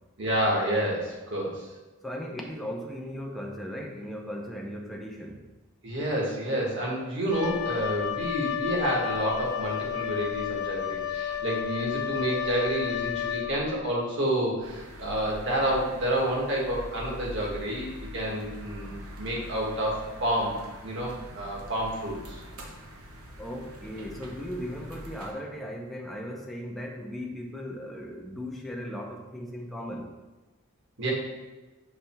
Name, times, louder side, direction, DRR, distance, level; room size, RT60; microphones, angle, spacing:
voice 1, 0.2-1.7 5.8-20.6 20.8-22.4 31.0-31.1, right 1 dB, 55° right, -3 dB, 1.7 m, -29 dB
voice 2, 2.0-5.4 23.4-30.1, equal, ahead, -1 dB, 0.6 m, -37 dB
Wind instrument woodwind instrument, 7.3-13.8, left 9 dB, 80° left, 0.6 m, -32 dB
sound 1, 14.6-25.3, equal, 80° right, 1.0 m, -44 dB
6.7 x 3.3 x 4.5 m, 1.2 s
head